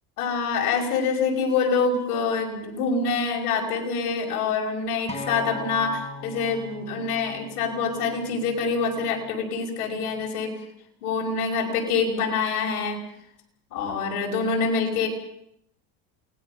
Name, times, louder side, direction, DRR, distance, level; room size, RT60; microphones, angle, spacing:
voice 1, 0.2-10.5 11.0-13.0 13.7-15.1, left 5 dB, 85° left, 2 dB, 5.7 m, -26 dB
Acoustic guitar, 5.1-9.4 10.2-10.3, left 2 dB, 15° left, 4.3 m, -40 dB
28.5 x 20.0 x 5.9 m, 0.73 s
supercardioid pair, 105°, 44 cm